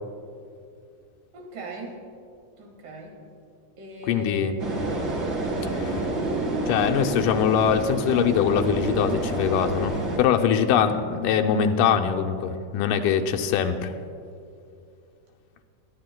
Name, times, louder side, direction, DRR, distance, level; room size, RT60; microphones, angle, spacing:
voice 1, 1.3-2.0 2.6-3.2 3.8-4.5, right 2 dB, 90° right, 1 dB, 3.4 m, -39 dB
voice 2, 4.1-4.6 5.7-6.0 6.7-13.9, left 8 dB, 85° left, 5 dB, 2.3 m, -23 dB
sound 1, 4.6-10.2, right 2 dB, 35° right, 1.6 m, -28 dB
22.0 x 11.0 x 2.2 m, 2.5 s
omnidirectional pair, 3.6 m